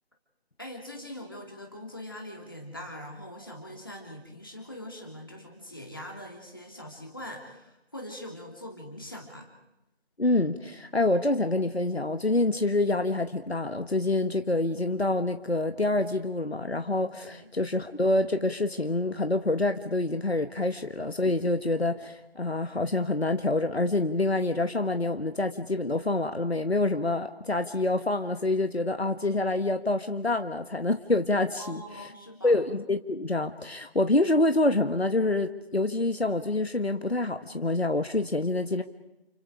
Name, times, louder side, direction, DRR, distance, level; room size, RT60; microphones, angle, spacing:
voice 1, 0.6-9.5 17.3-17.5 31.6-32.6, left 1 dB, 20° left, 0 dB, 3.0 m, -42 dB
voice 2, 10.2-32.1 32.4-38.8, left 2 dB, 75° left, 8 dB, 1.7 m, -27 dB
30.0 x 29.5 x 5.1 m, 0.94 s
figure-of-eight pair, 175°, 31 cm